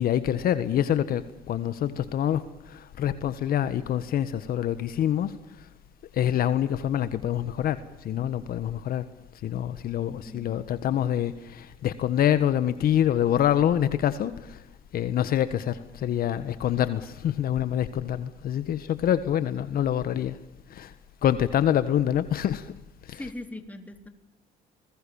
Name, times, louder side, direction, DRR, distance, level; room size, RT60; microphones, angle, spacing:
voice 1, 0.0-5.7 6.1-9.1 9.4-14.6 14.9-20.4 20.7-20.9 21.2-22.7 23.0-23.2, left 10 dB, 60° left, 1.6 m, -26 dB
voice 2, 10.3-10.6 23.1-24.1, left 1 dB, 10° left, 3.8 m, -40 dB
30.0 x 21.0 x 7.2 m
cardioid pair, 110°, 17 cm